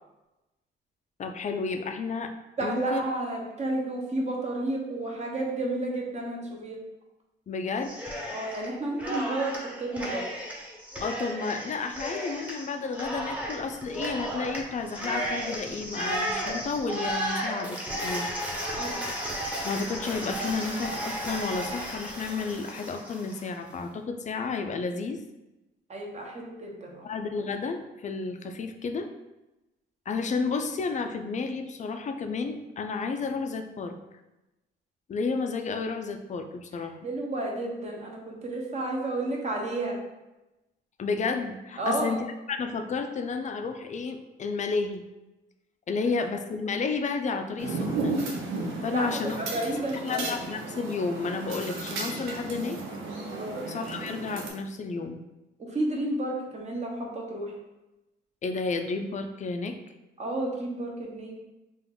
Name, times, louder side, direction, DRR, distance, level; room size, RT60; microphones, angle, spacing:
voice 1, 1.2-2.3 2.6-3.0 7.5-7.9 11.0-18.3 19.6-25.2 27.0-29.1 30.1-34.0 35.1-37.0 41.0-42.2 42.5-45.0 45.9-48.2 48.8-49.4 50.0-52.8 53.7-55.2 58.4-59.8, left 4 dB, 35° left, 6 dB, 0.5 m, -31 dB
voice 2, 2.6-6.8 8.3-10.3 18.7-19.1 25.9-27.1 37.0-40.0 41.8-42.2 48.9-50.3 53.4-53.6 55.6-57.5 60.2-61.3, right 2 dB, 35° right, -1 dB, 1.0 m, -31 dB
Cheering, 7.8-8.7 9.0-23.5, equal, 5° right, 1.0 m, -34 dB
sound 1, 47.6-54.5, right 3 dB, 90° right, 0.7 m, -34 dB
3.8 x 2.5 x 3.7 m, 0.99 s
cardioid pair, 90°, 20 cm